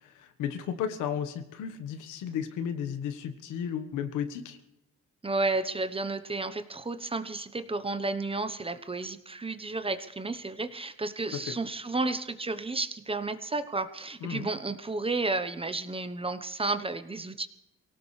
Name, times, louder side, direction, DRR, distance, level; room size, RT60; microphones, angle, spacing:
voice 1, 0.0-4.6 11.3-11.6 14.2-14.5, left 8 dB, 90° left, 9 dB, 1.4 m, -34 dB
voice 2, 5.2-17.5, right 3 dB, 20° right, 10 dB, 1.0 m, -32 dB
23.5 x 17.5 x 3.3 m, 0.89 s
cardioid pair, 90°, 30 cm